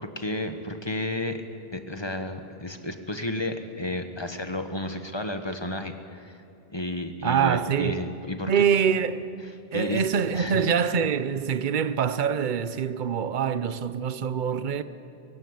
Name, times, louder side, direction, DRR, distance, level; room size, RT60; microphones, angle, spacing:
voice 1, 0.0-1.4 1.7-6.4 6.7-8.6 9.7-10.1 10.3-10.7, left 1 dB, 25° left, 1.3 m, -32 dB
voice 2, 7.2-8.0 8.5-9.3 9.7-14.8, right 7 dB, 50° right, 0.9 m, -25 dB
23.0 x 15.5 x 9.7 m
omnidirectional pair, 1.1 m